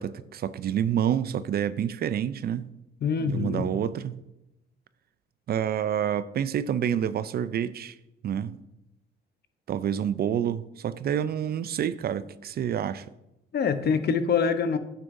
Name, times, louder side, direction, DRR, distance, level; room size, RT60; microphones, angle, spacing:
voice 1, 0.0-2.7 3.3-4.2 5.5-7.9 8.2-8.6 9.7-13.1, right 9 dB, 50° right, 0.4 m, -28 dB
voice 2, 3.0-3.7 13.5-14.8, left 6 dB, 55° left, 0.8 m, -25 dB
9.6 x 8.0 x 2.6 m
cardioid pair, 90°, 20 cm